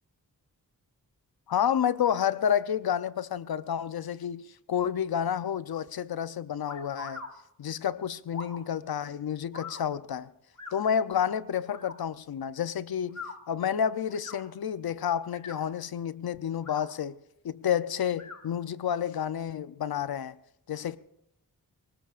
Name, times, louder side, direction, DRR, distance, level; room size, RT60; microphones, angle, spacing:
voice 1, 1.5-4.4 4.7-7.2 7.6-10.3 10.7-13.2 13.5-17.2 17.4-20.4 20.7-21.0, left 8 dB, 75° left, 0.7 m, -30 dB
sound 1, 6.7-7.3 8.3-8.6 9.5-9.8 10.6-10.8 11.7-11.9 13.0-13.3 14.1-14.4 15.2-15.7 16.5-16.9 18.1-18.4, left 4 dB, 50° left, 2.3 m, -42 dB
24.0 x 19.5 x 2.5 m
wide cardioid pair, 105°, 37 cm